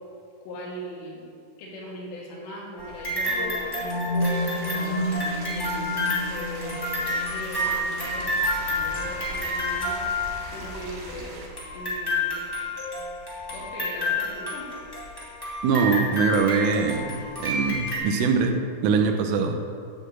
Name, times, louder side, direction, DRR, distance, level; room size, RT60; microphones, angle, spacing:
voice 1, 0.4-1.3 1.6-4.0 4.5-10.1 10.5-11.5 11.7-12.5 13.5-14.7, equal, 85° left, -4 dB, 4.6 m, -39 dB
sound 1, 2.8-10.7 11.6-18.0, left 1 dB, 15° left, 0.8 m, -29 dB
sound 2, 3.2-11.3, equal, 65° left, 2.7 m, -33 dB
sound 3, 4.3-11.5, right 2 dB, 70° right, 3.9 m, -41 dB
voice 2, 15.6-18.6 18.8-19.6, right 5 dB, 90° right, 4 dB, 3.5 m, -23 dB
12.5 x 4.2 x 8.2 m, 2.4 s
omnidirectional pair, 5.6 m